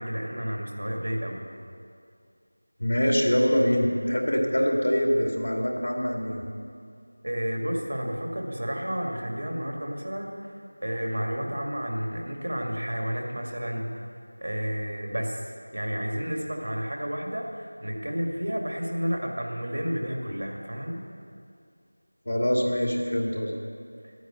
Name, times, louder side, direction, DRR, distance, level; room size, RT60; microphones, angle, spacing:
voice 1, 0.0-1.4 7.2-10.5 10.8-13.9 14.4-15.4 15.7-21.0, equal, 60° right, 1 dB, 2.3 m, -31 dB
voice 2, 2.8-6.5 22.2-23.6, equal, 65° left, 0 dB, 2.6 m, -24 dB
11.0 x 9.4 x 8.1 m, 2.3 s
figure-of-eight pair, 175°, 0 cm